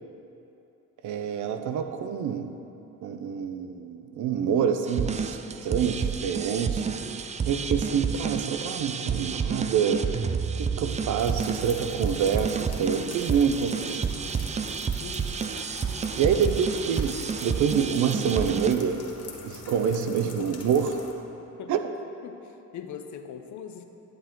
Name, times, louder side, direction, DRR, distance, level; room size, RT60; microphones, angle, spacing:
voice 1, 1.0-2.5 3.0-7.0 7.5-10.1 10.6-14.0 16.2-19.0 19.4-20.9 21.7-21.8, right 7 dB, 75° right, 8 dB, 0.7 m, -27 dB
sound 1, 4.9-18.7, right 6 dB, 25° right, 0.4 m, -30 dB
sound 2, 11.2-21.1, left 4 dB, 55° left, 1.2 m, -45 dB
voice 2, 15.0-15.4 20.2-20.5 21.6-21.7 22.2-23.9, left 8 dB, 70° left, 7 dB, 0.8 m, -41 dB
11.5 x 7.7 x 3.8 m, 2.9 s
cardioid pair, 90°, 30 cm